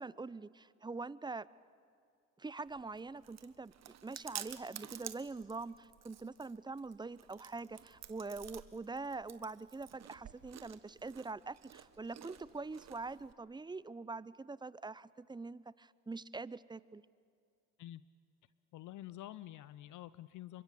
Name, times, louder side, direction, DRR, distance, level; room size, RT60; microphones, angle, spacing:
voice 1, 0.0-1.5 2.4-3.7 4.0-17.0, right 3 dB, 10° right, 19 dB, 0.6 m, -44 dB
Chewing mastication, 2.7-13.3, right 10 dB, 50° right, 1.4 m, -52 dB
voice 2, 18.7-20.6, left 14 dB, 60° left, 16 dB, 0.7 m, -48 dB
28.0 x 24.5 x 8.5 m, 2.3 s
hypercardioid pair, 65°, 35 cm